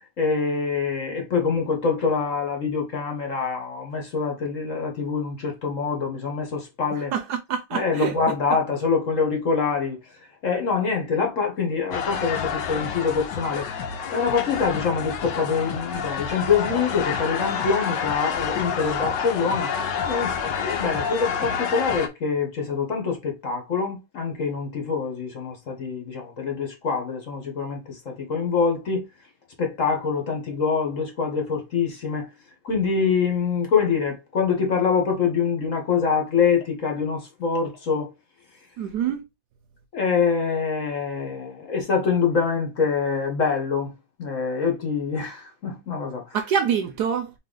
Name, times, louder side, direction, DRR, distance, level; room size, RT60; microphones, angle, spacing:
voice 1, 0.2-7.1 7.7-10.0 10.4-13.7 14.1-19.7 20.1-29.0 29.6-32.3 32.6-38.1 39.9-43.9 44.2-46.2, left 5 dB, 50° left, 1.2 m, -25 dB
voice 2, 7.1-8.1 38.8-39.2 46.3-47.3, right 8 dB, 70° right, 1.0 m, -25 dB
sound 1, 11.9-22.1, left 7 dB, 75° left, 1.3 m, -28 dB
4.0 x 3.1 x 3.7 m
omnidirectional pair, 2.1 m